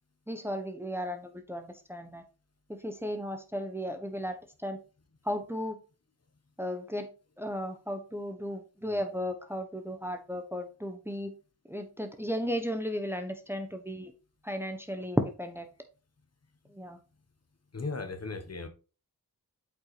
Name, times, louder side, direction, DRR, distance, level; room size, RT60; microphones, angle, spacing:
voice 1, 0.3-2.2 2.7-4.8 5.2-5.8 6.6-7.1 7.4-11.3 11.7-14.1 14.4-15.7 16.7-17.0, equal, 5° right, 6 dB, 1.0 m, -35 dB
voice 2, 17.7-18.7, left 3 dB, 40° left, 7 dB, 1.1 m, -36 dB
8.1 x 5.4 x 3.2 m, 0.34 s
cardioid pair, 60°, 39 cm